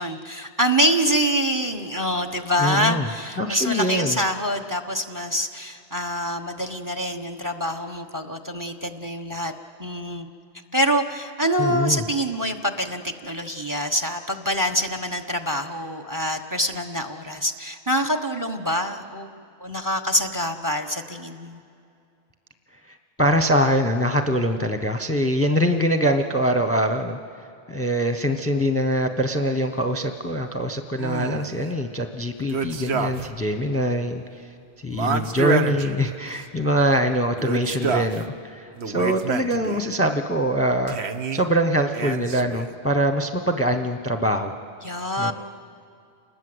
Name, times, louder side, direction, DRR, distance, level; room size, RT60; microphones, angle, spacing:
voice 1, 0.0-9.5 9.8-10.3 10.7-19.3 19.6-21.6 44.8-45.3, equal, 20° right, 8 dB, 1.1 m, -25 dB
voice 2, 2.6-3.1 3.4-4.2 11.6-12.0 22.9-27.2 27.7-34.5 34.8-41.0 41.3-44.5 45.2-45.3, equal, 15° left, 7 dB, 0.9 m, -23 dB
sound 1, 31.0-31.6 32.5-33.4 33.7-33.8 34.9-36.4 37.3-38.2 38.8-39.8 40.9-41.4 41.9-42.7, right 5 dB, 75° right, 1.3 m, -28 dB
29.0 x 20.5 x 8.0 m, 2.5 s
omnidirectional pair, 1.1 m